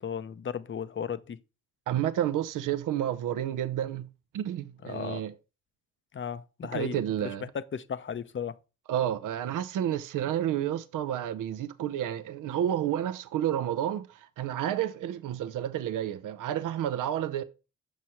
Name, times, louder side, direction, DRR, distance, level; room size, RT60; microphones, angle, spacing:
voice 1, 0.0-1.4 4.8-5.3 6.1-7.0 7.5-8.6, left 7 dB, 35° left, 0.6 m, -35 dB
voice 2, 1.9-4.1 4.3-5.3 6.7-7.5 8.9-17.4, right 11 dB, 70° right, 0.6 m, -30 dB
6.2 x 3.1 x 5.6 m
hypercardioid pair, 40°, 33 cm